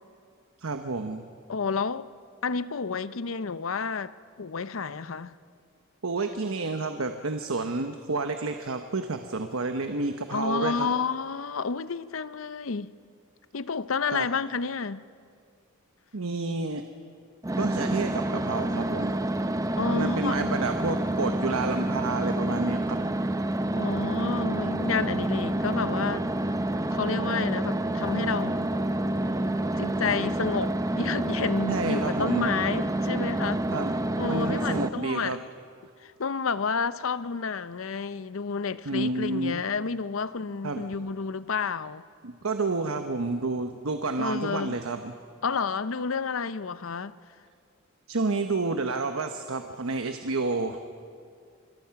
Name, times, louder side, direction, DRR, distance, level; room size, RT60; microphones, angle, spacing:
voice 1, 0.6-1.3 6.0-10.9 14.1-14.3 16.1-16.8 17.6-19.1 19.8-23.0 31.7-32.5 33.7-33.9 34.3-35.4 38.8-39.6 40.6-40.8 42.2-45.1 48.1-50.8, right 3 dB, 75° right, 1.1 m, -30 dB
voice 2, 1.5-2.1 2.4-5.3 10.3-12.9 13.5-15.0 19.8-20.6 23.8-26.3 26.9-28.7 29.8-33.6 34.2-35.4 36.0-42.0 44.2-44.8 45.4-47.2, left 5 dB, 70° left, 0.7 m, -30 dB
sound 1, 17.4-34.9, right 1 dB, 15° right, 0.7 m, -28 dB
27.5 x 22.5 x 5.9 m
head